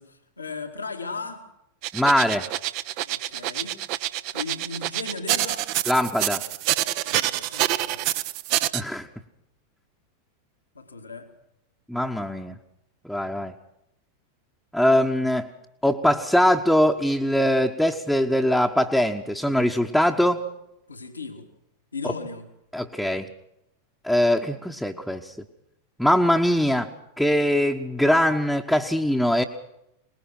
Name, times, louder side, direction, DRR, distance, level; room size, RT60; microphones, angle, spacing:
voice 1, 0.0-1.5 3.0-3.8 4.3-5.7 7.0-8.1 10.7-11.3 20.9-21.5 21.9-22.5, left 4 dB, 80° left, 4 dB, 2.3 m, -36 dB
sound 1, 1.8-8.8, right 14 dB, 45° right, 0.8 m, -26 dB
voice 2, 1.9-2.5 5.9-6.4 8.7-9.1 11.9-12.6 13.0-13.5 14.7-15.5 15.8-20.4 22.7-23.3 24.0-25.3 26.0-26.9 27.2-29.4, left 1 dB, ahead, 0 dB, 1.2 m, -22 dB
24.0 x 20.5 x 6.0 m, 0.82 s
figure-of-eight pair, 90°, 0 cm